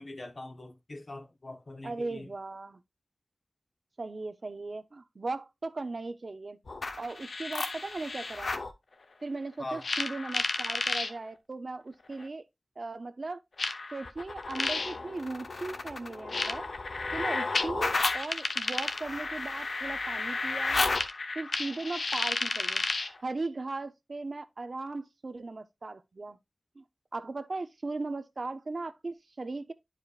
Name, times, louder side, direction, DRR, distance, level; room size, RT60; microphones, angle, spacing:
voice 1, 0.0-2.3 9.6-9.8, left 2 dB, 55° left, 1.0 m, -42 dB
voice 2, 1.8-2.8 4.0-6.6 7.0-8.5 9.2-12.4 12.8-13.4 13.9-16.7 17.1-20.8 21.3-22.8 23.2-26.4 26.8-26.9 27.1-29.7, right 3 dB, 60° right, 0.6 m, -38 dB
sound 1, 6.7-8.7 9.8-11.1 12.2-12.3 13.6-23.2, left 3 dB, 85° left, 0.7 m, -32 dB
10.5 x 4.9 x 2.4 m
wide cardioid pair, 75°, 0 cm